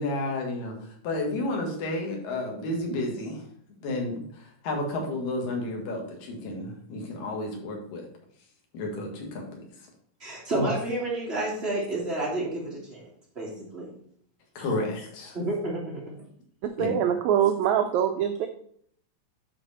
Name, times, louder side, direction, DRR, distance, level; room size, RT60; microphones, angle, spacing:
voice 1, 0.0-3.4 3.8-8.0 8.7-9.6 10.5-10.7 14.6-15.4 16.8-17.0, left 2 dB, 85° left, 1 dB, 3.5 m, -31 dB
voice 2, 10.2-13.1 13.4-13.9 15.3-16.1, right 1 dB, 20° right, -4 dB, 2.3 m, -30 dB
voice 3, 16.6-18.5, right 9 dB, 80° right, 6 dB, 1.7 m, -24 dB
11.0 x 4.3 x 4.2 m, 0.64 s
omnidirectional pair, 3.8 m